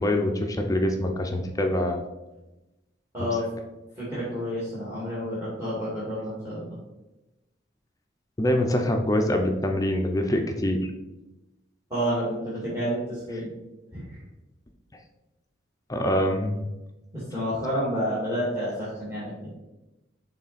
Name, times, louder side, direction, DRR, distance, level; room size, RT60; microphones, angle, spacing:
voice 1, 0.0-2.0 8.4-10.9 15.9-16.6, left 1 dB, 20° left, 4 dB, 0.5 m, -24 dB
voice 2, 3.1-3.5 4.0-6.8 11.9-13.5 13.9-14.2 17.1-19.5, equal, 15° right, -9 dB, 2.2 m, -29 dB
6.5 x 3.8 x 4.1 m, 1.0 s
head